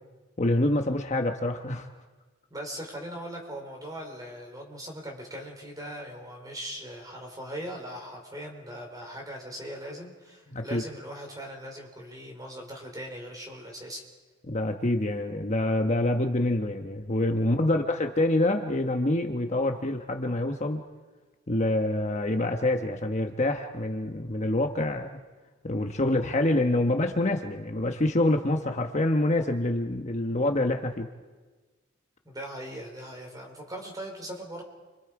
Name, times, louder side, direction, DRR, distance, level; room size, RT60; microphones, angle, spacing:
voice 1, 0.4-1.9 10.5-10.8 14.5-20.8 21.5-25.2 25.6-31.1, left 1 dB, 35° left, 5 dB, 1.1 m, -26 dB
voice 2, 2.5-14.0 17.4-17.6 32.2-34.6, equal, 20° right, 2 dB, 4.5 m, -40 dB
29.5 x 25.5 x 4.9 m, 1.3 s
head